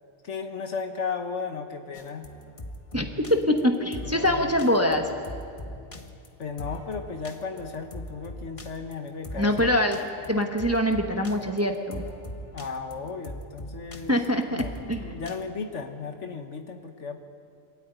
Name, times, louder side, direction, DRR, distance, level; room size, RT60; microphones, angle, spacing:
voice 1, 0.2-2.3 4.0-4.6 6.4-9.7 12.5-17.2, left 5 dB, 60° left, 6 dB, 1.4 m, -35 dB
sound 1, 1.9-15.4, left 1 dB, 25° left, 1.0 m, -41 dB
voice 2, 2.9-5.1 9.4-10.0 10.3-12.0 14.1-15.1, left 1 dB, 10° right, 4 dB, 1.0 m, -24 dB
23.5 x 13.0 x 9.2 m, 2.5 s
omnidirectional pair, 1.4 m